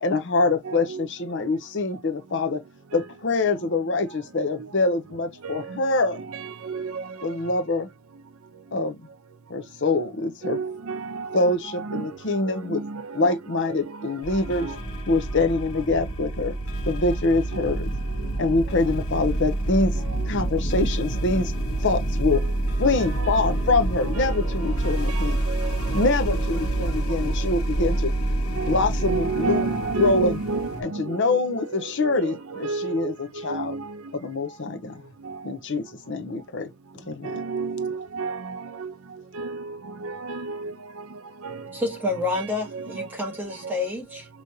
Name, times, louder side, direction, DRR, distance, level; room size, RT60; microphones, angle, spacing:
voice 1, 0.0-2.6 2.9-6.2 7.2-7.9 8.7-9.0 9.5-10.6 11.3-12.8 13.1-14.7 15.1-16.5 16.9-17.9 18.4-20.0 20.3-21.5 21.8-22.4 22.8-25.4 25.9-28.1 28.6-29.7 30.0-30.4 30.8-33.8 34.1-35.0 35.4-37.4, left 3 dB, 55° left, 0.8 m, -25 dB
voice 2, 0.6-1.1 5.4-5.8 6.2-7.0 10.0-10.1 10.4-12.2 12.4-13.3 13.7-14.1 14.6-14.8 17.5-17.6 22.3-22.5 23.2-23.4 24.1-24.4 24.8-26.5 28.6-34.0 35.2-35.4 37.2-38.9 39.3-40.7 41.4-42.0 42.4-42.5 42.7-43.1 43.6-43.7, right 4 dB, 75° right, 0.6 m, -32 dB
sound 1, 14.2-30.8, right 1 dB, 75° left, 1.2 m, -27 dB
voice 3, 41.7-44.3, left 2 dB, 10° right, 2.1 m, -29 dB
5.0 x 3.1 x 2.7 m
head